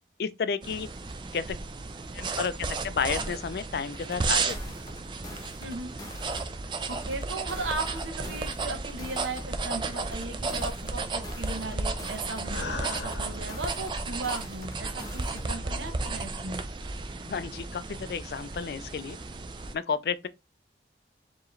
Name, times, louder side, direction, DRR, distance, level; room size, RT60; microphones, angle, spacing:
voice 1, 0.2-0.9 1.3-1.6 2.1-4.6 17.3-19.2 19.7-20.3, left 6 dB, 60° left, 0.3 m, -31 dB
sound 1, 0.6-19.7, right 3 dB, 25° right, 0.3 m, -34 dB
sound 2, 3.9-6.6 6.9-9.6 9.9-12.6 12.9-15.6, left 1 dB, 20° left, 0.9 m, -46 dB
voice 2, 5.6-5.9 6.9-16.6, right 3 dB, 90° right, 0.9 m, -37 dB
sound 3, 11.0-13.9 14.6-16.3, left 2 dB, 75° left, 0.8 m, -41 dB
4.6 x 2.9 x 3.1 m
head